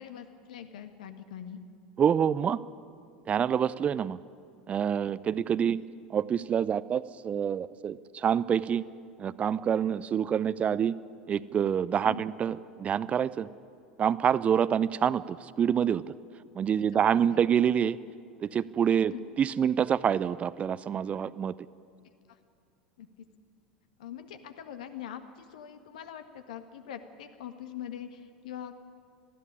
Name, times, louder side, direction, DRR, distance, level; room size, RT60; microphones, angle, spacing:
voice 1, 0.0-1.6 12.0-12.2 17.3-17.4 19.1-19.3 23.0-23.1 24.0-28.7, left 9 dB, 65° left, 9 dB, 1.7 m, -43 dB
voice 2, 2.0-2.6 3.3-4.2 4.7-5.8 6.1-8.8 9.2-10.9 11.3-13.5 14.0-16.0 16.5-18.0 18.4-21.5, right 8 dB, 30° right, 17 dB, 0.6 m, -27 dB
21.0 x 14.5 x 10.0 m, 2.4 s
figure-of-eight pair, 80°, 4 cm